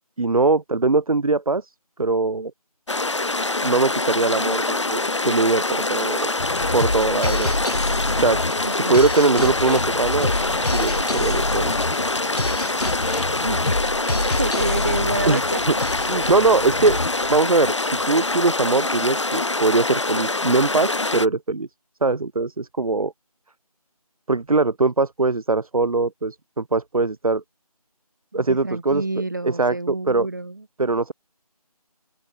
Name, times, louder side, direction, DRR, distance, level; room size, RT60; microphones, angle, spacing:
voice 1, 0.2-1.7 2.0-2.5 3.6-5.0 5.2-6.3 6.7-7.5 8.2-8.4 8.7-10.3 10.7-11.7 15.3-15.7 16.1-17.0 17.3-17.7 18.1-21.7 22.0-23.1 24.3-27.4 28.3-29.0 29.4-30.3 30.8-31.1, right 3 dB, 65° right, 0.7 m, -21 dB
sound 1, 2.9-21.3, left 2 dB, 50° left, 1.4 m, -25 dB
sound 2, 6.4-18.0, left 2 dB, 80° left, 2.0 m, -27 dB
voice 2, 8.6-9.0 13.4-13.9 14.2-15.6 28.3-30.6, right 2 dB, 30° right, 1.0 m, -29 dB
sound 3, 15.0-18.4 21.0-21.1, left 4 dB, 30° left, 7.7 m, -46 dB
open air
figure-of-eight pair, 170°, 20 cm